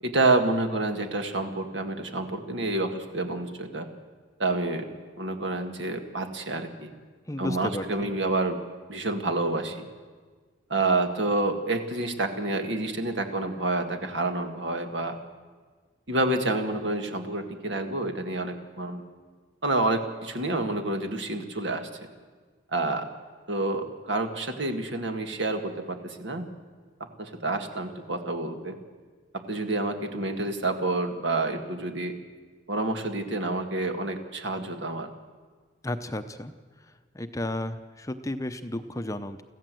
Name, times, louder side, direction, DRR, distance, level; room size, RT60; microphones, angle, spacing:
voice 1, 0.0-3.9 4.4-4.9 5.2-6.9 7.4-8.6 8.9-9.8 10.7-15.2 16.1-19.0 19.6-21.9 22.7-23.1 23.5-26.5 27.2-28.8 29.5-32.1 32.7-35.1, right 2 dB, 70° right, 5 dB, 2.0 m, -28 dB
voice 2, 7.3-7.8 35.8-36.5 37.1-39.4, left 1 dB, 15° left, 9 dB, 0.7 m, -33 dB
23.5 x 15.0 x 7.8 m, 1.5 s
head